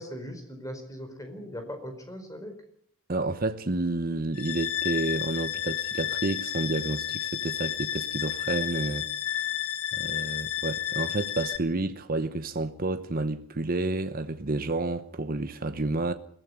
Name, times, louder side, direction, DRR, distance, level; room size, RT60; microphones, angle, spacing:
voice 1, 0.0-2.6, equal, 15° left, 4.6 m, -39 dB
voice 2, 3.1-9.1 9.9-16.1, right 2 dB, 40° right, 0.9 m, -30 dB
sound 1, 4.3-11.6, left 12 dB, 80° left, 2.1 m, -31 dB
21.5 x 15.5 x 9.5 m
head